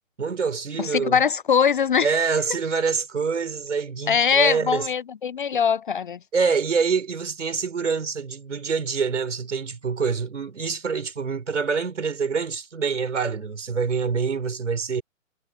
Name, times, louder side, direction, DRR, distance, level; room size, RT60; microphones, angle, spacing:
voice 1, 0.2-1.2 2.0-4.9 6.3-15.0, right 5 dB, 65° right, 4.5 m, -26 dB
voice 2, 0.8-2.2 4.1-6.2, left 7 dB, 40° left, 0.7 m, -22 dB
figure-of-eight pair, 135°, 39 cm